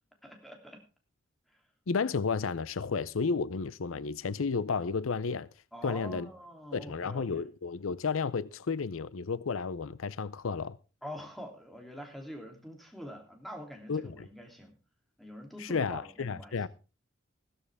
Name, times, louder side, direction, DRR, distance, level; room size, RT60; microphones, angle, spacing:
voice 1, 0.2-0.8 5.7-7.4 11.0-14.8 15.2-16.6, equal, ahead, 3.0 m, -45 dB
voice 2, 1.9-5.5 5.8-6.3 6.7-10.8 13.9-14.3 15.6-16.7, left 5 dB, 90° left, 0.6 m, -32 dB
15.5 x 13.5 x 3.5 m
head